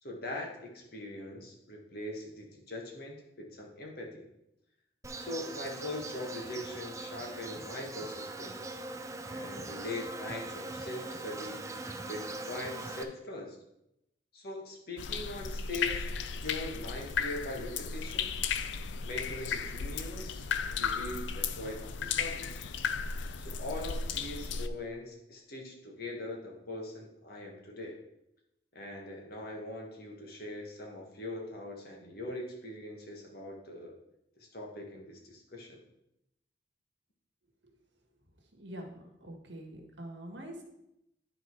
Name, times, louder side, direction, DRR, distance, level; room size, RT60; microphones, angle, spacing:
voice 1, 0.0-4.3 5.1-8.8 9.3-11.7 12.1-13.6 14.3-16.1 16.3-18.4 19.0-22.6 23.4-28.0 28.7-34.0 34.4-35.8, left 1 dB, 55° left, 0 dB, 1.6 m, -41 dB
Insect, 5.0-13.0, right 2 dB, 15° right, 0.5 m, -41 dB
sound 1, 15.0-24.7, left 6 dB, 85° left, 0.5 m, -35 dB
voice 2, 38.5-40.6, right 1 dB, 85° right, 2 dB, 1.6 m, -45 dB
11.0 x 4.0 x 4.6 m, 0.85 s
head